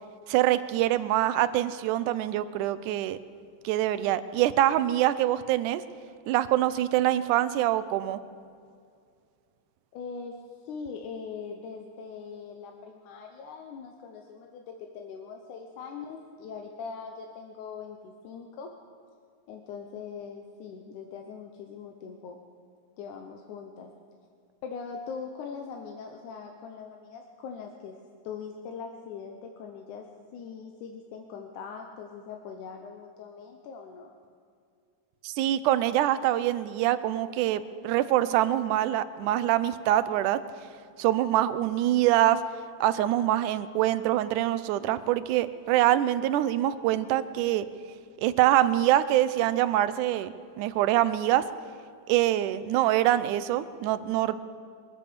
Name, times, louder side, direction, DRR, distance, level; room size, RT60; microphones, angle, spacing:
voice 1, 0.3-3.2 3.6-5.8 6.3-8.2 35.2-40.4 41.0-42.4 42.8-47.7 48.2-51.5 52.1-54.4, right 13 dB, 90° right, 13 dB, 2.1 m, -25 dB
voice 2, 9.9-18.7 19.5-22.4 23.0-23.9 24.6-28.0 28.2-34.2, left 5 dB, 80° left, 3 dB, 2.4 m, -41 dB
23.0 x 8.2 x 6.8 m, 2.3 s
omnidirectional pair, 3.5 m